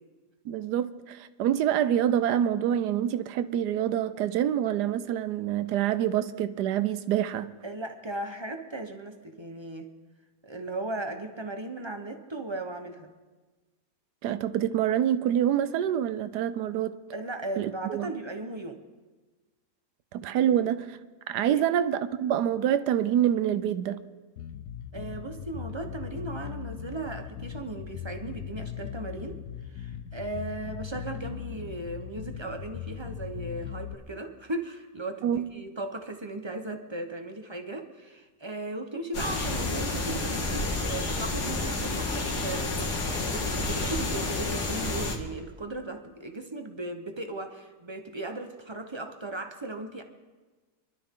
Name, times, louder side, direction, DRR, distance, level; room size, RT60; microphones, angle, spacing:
voice 1, 0.4-7.5 14.2-16.9 17.6-18.1 20.1-21.0 21.3-24.0 35.2-35.4, right 10 dB, 85° right, 1.3 m, -26 dB
voice 2, 7.6-9.9 10.4-13.1 17.1-18.8 20.4-20.6 21.4-21.6 24.9-29.4 29.7-50.0, right 2 dB, 25° right, 0.7 m, -37 dB
Bass guitar, 24.4-34.0, left 9 dB, 65° left, 1.0 m, -39 dB
sound 1, 39.1-45.2, left 2 dB, 80° left, 2.3 m, -30 dB
25.0 x 12.0 x 3.7 m
omnidirectional pair, 1.7 m